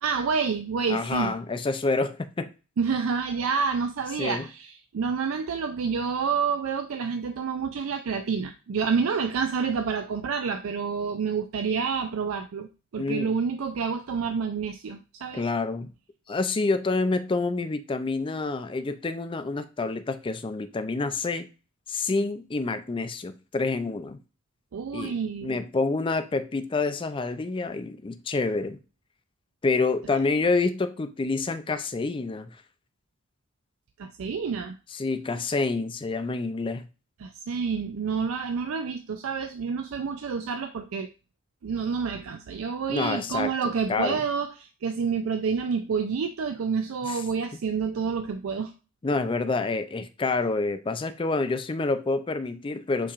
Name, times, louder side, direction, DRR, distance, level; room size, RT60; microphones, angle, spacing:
voice 1, 0.0-1.4 2.8-15.5 24.7-25.6 34.0-34.8 37.2-41.1 41.6-48.7, right 5 dB, 85° right, 0.4 m, -28 dB
voice 2, 0.9-2.5 4.2-4.5 13.0-13.3 15.3-15.9 16.3-21.5 21.9-24.2 24.9-28.8 29.6-32.5 34.9-36.8 42.9-43.5 43.9-44.2 47.0-47.2 49.0-53.1, left 3 dB, 25° left, 0.4 m, -28 dB
7.0 x 3.0 x 2.4 m
head